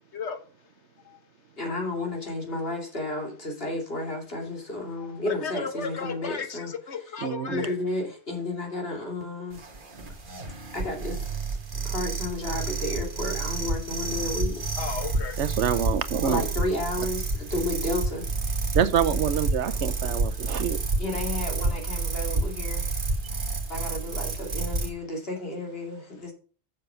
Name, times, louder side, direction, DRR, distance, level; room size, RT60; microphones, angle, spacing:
voice 1, 1.6-6.7 7.5-9.6 10.7-11.3 11.8-14.6 16.3-18.5 21.0-22.9 23.3-26.3, left 2 dB, 60° left, 2.9 m, -32 dB
voice 2, 5.0-7.7 14.8-15.4 15.7-15.8 16.2-16.5, left 5 dB, 75° left, 1.3 m, -35 dB
voice 3, 7.2-7.7 15.4-16.4 18.7-20.8, right 8 dB, 85° right, 1.1 m, -26 dB
sound 1, 9.5-24.9, right 3 dB, 50° right, 1.5 m, -29 dB
7.1 x 6.7 x 5.6 m
omnidirectional pair, 1.2 m